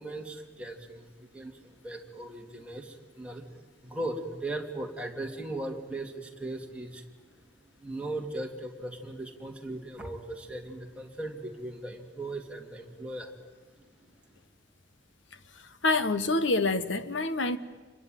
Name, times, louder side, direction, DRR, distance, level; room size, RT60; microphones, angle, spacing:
voice 1, 0.0-7.1 7.8-13.5, right 2 dB, 5° right, 1 dB, 2.5 m, -38 dB
voice 2, 15.8-17.6, left 2 dB, 75° left, 12 dB, 1.4 m, -26 dB
27.0 x 22.5 x 9.3 m, 1.3 s
head